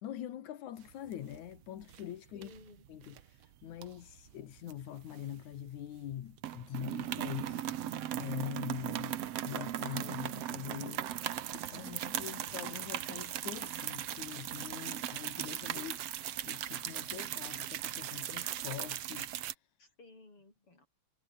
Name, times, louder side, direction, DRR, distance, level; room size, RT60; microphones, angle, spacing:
voice 1, 0.0-2.5 2.9-11.1 11.5-16.0 16.5-19.7, left 11 dB, 85° left, 2.9 m, -44 dB
sound 1, 0.9-1.5 1.8-2.0 2.4-3.2 3.8-5.7 6.0-6.1 6.4-19.5, right 12 dB, 65° right, 2.1 m, -38 dB
voice 2, 2.3-2.8 11.5-12.7 19.8-20.9, left 2 dB, 45° left, 8.8 m, -57 dB
omnidirectional pair, 3.3 m